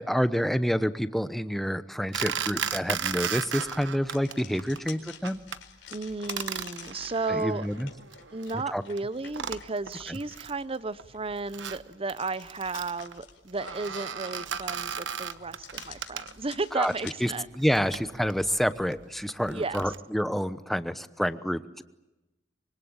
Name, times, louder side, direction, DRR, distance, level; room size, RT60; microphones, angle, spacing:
voice 1, 0.0-5.4 7.3-7.9 8.5-8.8 10.1-10.2 16.7-16.9 17.2-21.8, equal, ahead, 13 dB, 0.9 m, -28 dB
sound 1, 2.1-4.3 4.6-4.9 5.2-5.6 5.9-8.6 9.0-9.1 9.3-10.6 11.0-16.6 17.2-20.0, right 8 dB, 85° right, 1.1 m, -36 dB
sound 2, 2.2-17.1, left 8 dB, 90° left, 4.6 m, -50 dB
voice 2, 5.9-7.7 8.3-17.5 17.8-17.9 19.5-19.8, right 3 dB, 30° right, 16 dB, 0.8 m, -33 dB
25.0 x 23.5 x 8.9 m, 1.0 s
head